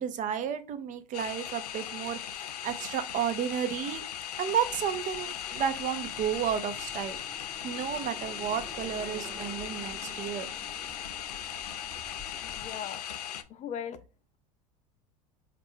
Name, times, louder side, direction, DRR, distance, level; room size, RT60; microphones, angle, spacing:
voice 1, 0.0-4.1 4.4-7.2 7.6-10.5, right 9 dB, 40° right, 10 dB, 0.6 m, -32 dB
sound 1, 1.1-13.4, left 9 dB, 85° left, 0.4 m, -38 dB
sound 2, 4.6-12.7, equal, 10° right, 0.9 m, -49 dB
voice 2, 12.4-13.1 13.5-14.0, left 8 dB, 35° left, 11 dB, 0.6 m, -39 dB
4.2 x 2.4 x 3.6 m, 0.34 s
hypercardioid pair, 85°, 20 cm